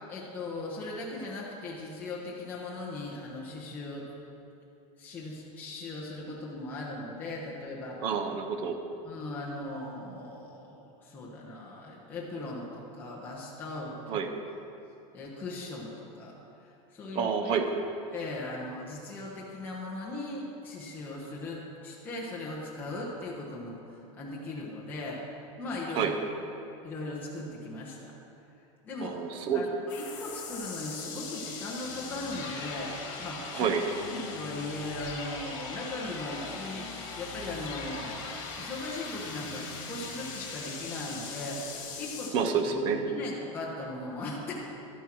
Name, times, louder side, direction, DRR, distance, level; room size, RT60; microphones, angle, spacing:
voice 1, 0.1-4.0 5.0-8.0 9.0-14.2 15.1-16.3 16.6-17.7 18.1-25.2 25.6-26.1 26.8-28.1 28.8-33.8 34.1-44.5, left 2 dB, 10° left, -5 dB, 1.0 m, -39 dB
voice 2, 8.0-8.8 14.1-14.3 17.1-17.7 25.9-26.1 29.0-29.6 33.5-33.9 42.3-43.0, right 6 dB, 30° right, 6 dB, 0.7 m, -28 dB
sound 1, 29.9-42.3, left 4 dB, 45° left, 2.2 m, -40 dB
12.0 x 9.9 x 4.5 m, 2.8 s
supercardioid pair, 170°, 18 cm